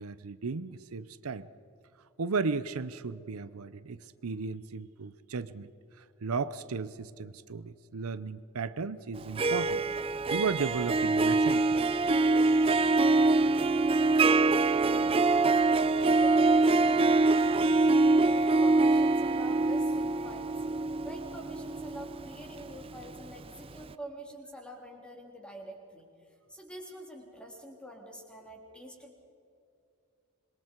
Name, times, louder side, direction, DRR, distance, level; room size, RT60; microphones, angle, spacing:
voice 1, 0.0-1.5 2.2-5.7 6.0-9.8 10.3-11.8, right 4 dB, 80° right, 14 dB, 0.6 m, -35 dB
Harp, 9.2-23.1, right 3 dB, 25° right, 0.4 m, -24 dB
voice 2, 13.0-20.6 21.0-26.1 26.5-29.2, right 1 dB, 5° left, 0 dB, 3.2 m, -46 dB
26.5 x 22.0 x 4.6 m, 2.6 s
head